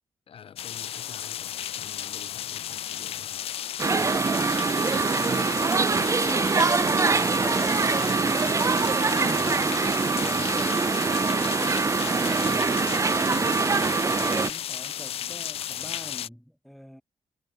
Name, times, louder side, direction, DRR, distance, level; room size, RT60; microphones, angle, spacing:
voice 1, 0.3-3.5 10.6-10.9 13.2-13.8, left 8 dB, 70° left, 7.9 m, -49 dB
sound 1, 0.6-16.3, left 11 dB, 90° left, 0.8 m, -34 dB
sound 2, 3.8-14.5, right 4 dB, 30° right, 0.8 m, -24 dB
voice 2, 4.3-5.0 6.1-11.8 12.0-13.0 13.8-17.0, equal, ahead, 4.4 m, -44 dB
cardioid pair, 105°, 10 cm